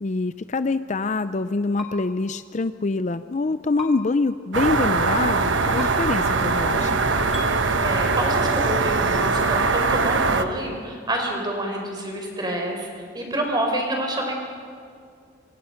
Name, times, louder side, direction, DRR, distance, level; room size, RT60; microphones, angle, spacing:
voice 1, 0.0-7.0, left 3 dB, 40° left, 12 dB, 0.5 m, -25 dB
sound 1, 1.8-1.9 3.8-3.9 5.8-5.9 7.3-7.5, left 2 dB, ahead, 2.9 m, -35 dB
sound 2, 4.5-10.4, right 4 dB, 70° right, 1.2 m, -21 dB
voice 2, 7.8-14.4, right 1 dB, 20° right, 1 dB, 4.5 m, -28 dB
26.5 x 25.5 x 5.8 m, 2.3 s
head